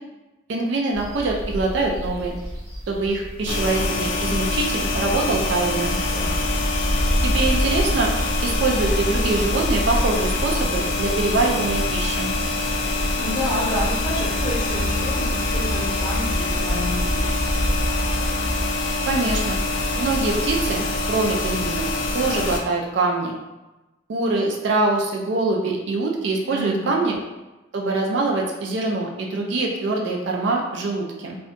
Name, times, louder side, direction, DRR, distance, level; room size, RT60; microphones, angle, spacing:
voice 1, 0.5-2.3 2.9-6.0 7.2-8.1 8.4-12.3 19.1-19.6 20.0-21.9 22.1-23.3 24.1-27.2 27.7-31.4, right 3 dB, 60° right, -1 dB, 0.3 m, -24 dB
sound 1, 0.9-18.6, equal, 80° right, 1.0 m, -29 dB
sound 2, 3.5-22.6, left 2 dB, 70° left, 0.4 m, -25 dB
voice 2, 13.1-17.5 26.4-26.9, equal, 20° left, -8 dB, 0.8 m, -29 dB
2.6 x 2.2 x 2.5 m, 1.1 s
head